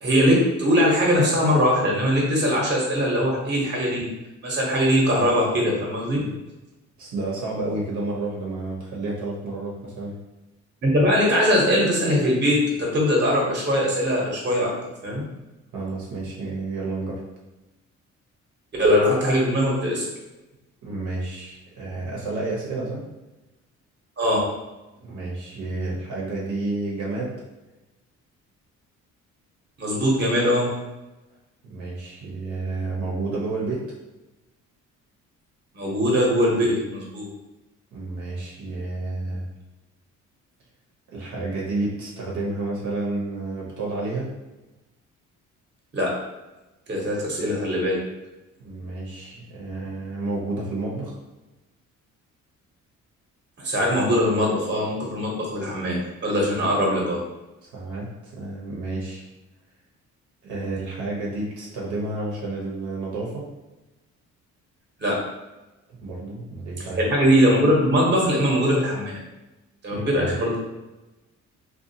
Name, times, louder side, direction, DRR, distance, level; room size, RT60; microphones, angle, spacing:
voice 1, 0.0-4.1 4.4-6.2 10.8-14.7 15.0-15.2 18.8-20.1 24.2-24.4 29.8-30.7 35.7-37.3 45.9-46.2 46.9-48.0 53.6-57.2 65.0-65.2 67.1-69.1 69.8-70.6, equal, 35° right, -2 dB, 0.9 m, -21 dB
voice 2, 7.0-10.2 15.7-17.2 20.8-23.0 25.0-27.4 31.6-33.8 37.9-39.5 41.1-44.3 48.6-51.2 57.6-59.2 60.4-63.5 66.0-67.0 69.9-70.3, right 2 dB, 75° right, -4 dB, 0.8 m, -30 dB
2.6 x 2.3 x 2.7 m, 1.0 s
cardioid pair, 90°, 30 cm